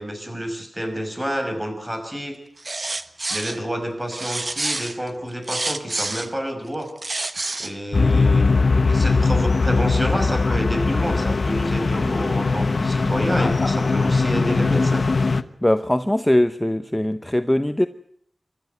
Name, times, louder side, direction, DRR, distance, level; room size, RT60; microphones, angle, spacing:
voice 1, 0.0-2.4 3.3-6.9 7.6-15.1, equal, 20° right, 5 dB, 5.9 m, -28 dB
sound 1, 2.6-3.6 4.1-6.3 6.8-7.7, right 2 dB, 50° right, 1.3 m, -28 dB
sound 2, 7.9-15.4, left 3 dB, 70° left, 1.1 m, -20 dB
sound 3, 9.5-10.0 10.4-11.3 11.9-12.5 13.1-14.3, left 2 dB, 45° left, 2.3 m, -37 dB
voice 2, 15.6-17.9, left 1 dB, 15° left, 10 dB, 0.8 m, -20 dB
26.5 x 13.0 x 9.4 m, 0.64 s
wide cardioid pair, 75°, 0 cm